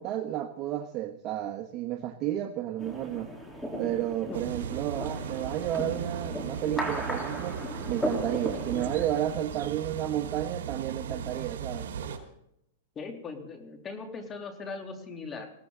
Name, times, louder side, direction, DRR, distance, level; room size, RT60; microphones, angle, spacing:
voice 1, 0.0-3.3 3.8-7.6 7.9-11.9, right 12 dB, 35° right, 5 dB, 1.3 m, -32 dB
sound 1, 2.8-9.1, equal, 5° left, 3.8 m, -36 dB
sound 2, 4.3-12.2, right 7 dB, 75° right, 4.6 m, -37 dB
voice 2, 12.9-15.5, left 4 dB, 20° left, 4 dB, 3.2 m, -39 dB
21.0 x 17.0 x 4.0 m, 0.77 s
hypercardioid pair, 145°, 0 cm